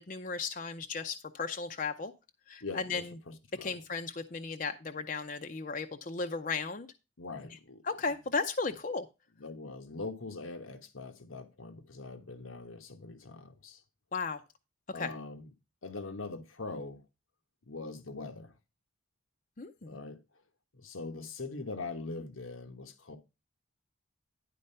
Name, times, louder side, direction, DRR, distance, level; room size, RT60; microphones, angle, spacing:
voice 1, 0.0-2.1 2.5-3.1 3.6-6.9 7.9-9.1 14.1-14.4 14.9-15.1 19.6-20.0, left 4 dB, 40° left, 0.6 m, -35 dB
voice 2, 2.6-3.8 7.2-8.0 9.4-13.8 14.9-15.5 15.8-17.0 17.7-18.5 19.8-20.2 20.7-23.2, left 3 dB, 85° left, 1.2 m, -42 dB
11.0 x 4.3 x 5.5 m
head